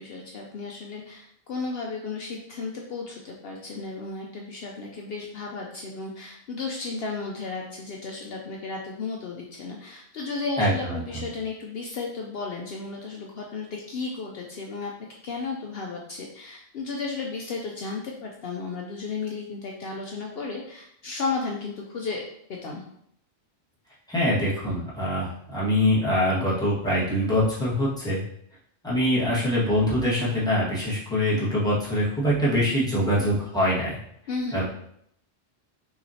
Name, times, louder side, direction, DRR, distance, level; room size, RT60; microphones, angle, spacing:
voice 1, 0.0-14.9 15.2-22.2 22.5-22.8 34.3-34.6, left 4 dB, 65° left, 0 dB, 0.8 m, -34 dB
voice 2, 10.6-11.2 24.1-28.2 28.8-34.0 34.5-34.6, equal, 5° left, -9 dB, 1.5 m, -24 dB
5.7 x 3.0 x 2.7 m, 0.70 s
omnidirectional pair, 1.1 m